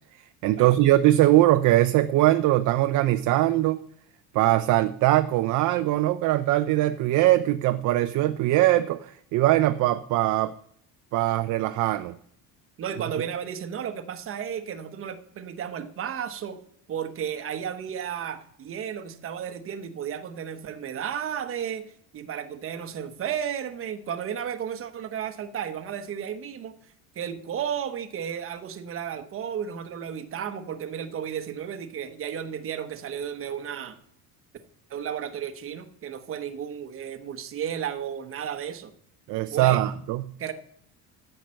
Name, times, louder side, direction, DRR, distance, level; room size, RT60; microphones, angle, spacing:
voice 1, 0.4-3.8 4.3-10.5 11.1-12.2 39.3-40.2, right 15 dB, 55° right, 10 dB, 0.5 m, -21 dB
voice 2, 12.8-16.6 16.9-26.7 27.1-34.0 34.9-38.9 39.5-39.8 40.4-40.5, right 8 dB, 35° right, 8 dB, 1.0 m, -33 dB
10.5 x 6.6 x 7.5 m, 0.67 s
cardioid pair, 155°, 37 cm